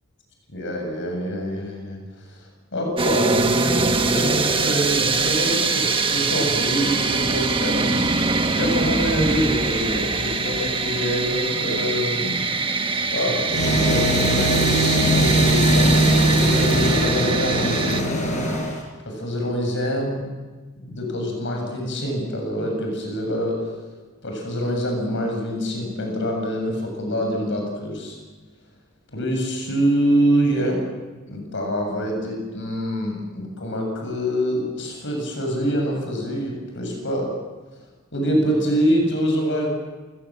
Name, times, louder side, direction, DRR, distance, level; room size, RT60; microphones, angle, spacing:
voice 1, 0.5-2.4 2.7-8.1 8.5-12.4 13.1-18.0 19.1-20.3 20.8-23.7 24.2-28.2 29.1-30.9 31.3-37.3 38.1-39.7, equal, 60° left, 2 dB, 7.6 m, -25 dB
Sneeze slowmotion, 3.0-18.0, right 4 dB, 25° right, 1.4 m, -23 dB
sound 1, 13.5-18.8, right 1 dB, 35° left, 5.7 m, -20 dB
29.5 x 18.5 x 7.7 m, 1.3 s
head